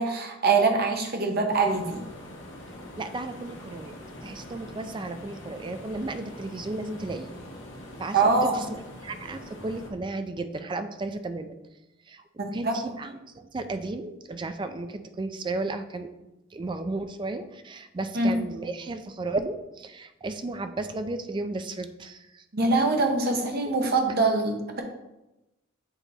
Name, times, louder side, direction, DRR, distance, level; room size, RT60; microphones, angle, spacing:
voice 1, 0.0-2.0 8.1-8.6 12.4-12.8 18.1-18.3 22.5-24.8, right 3 dB, 50° right, 3 dB, 0.9 m, -24 dB
sound 1, 1.5-9.9, left 1 dB, 75° left, 1.3 m, -43 dB
voice 2, 3.0-3.9 4.2-7.3 8.0-8.7 9.0-11.6 12.1-12.2 12.5-16.1 16.5-22.4 23.7-23.8, right 2 dB, 25° right, 9 dB, 0.4 m, -34 dB
7.9 x 2.9 x 4.1 m, 0.97 s
head